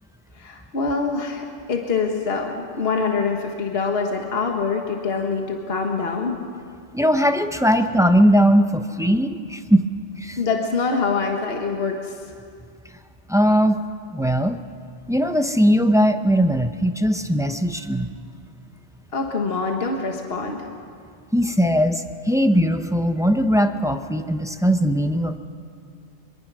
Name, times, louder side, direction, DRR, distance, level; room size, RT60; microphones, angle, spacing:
voice 1, 0.4-6.4 10.4-12.1 19.1-20.6, left 4 dB, 50° left, 2 dB, 1.7 m, -25 dB
voice 2, 6.9-9.8 10.2-10.4 13.3-13.8 14.1-14.6 15.1-18.1 21.3-25.4, equal, 5° right, 7 dB, 0.5 m, -19 dB
23.0 x 23.0 x 6.2 m, 2.3 s
omnidirectional pair, 1.3 m